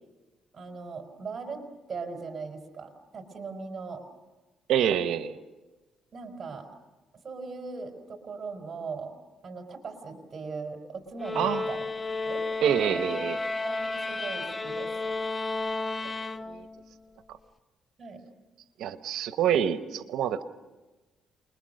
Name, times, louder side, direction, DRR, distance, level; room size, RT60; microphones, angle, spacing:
voice 1, 0.5-1.6 1.9-4.0 6.1-6.7 7.2-9.1 9.4-11.9 12.2-12.4 12.8-13.0 13.5-15.1 18.0-18.2, right 4 dB, 40° right, 4 dB, 4.3 m, -39 dB
voice 2, 4.7-5.4 11.3-11.6 12.6-13.4 16.5-16.7 18.8-20.4, right 9 dB, 80° right, 11 dB, 1.1 m, -26 dB
sound 1, 11.2-16.9, left 3 dB, 20° left, 0.8 m, -32 dB
28.5 x 21.5 x 6.6 m, 1.2 s
cardioid pair, 90°, 0 cm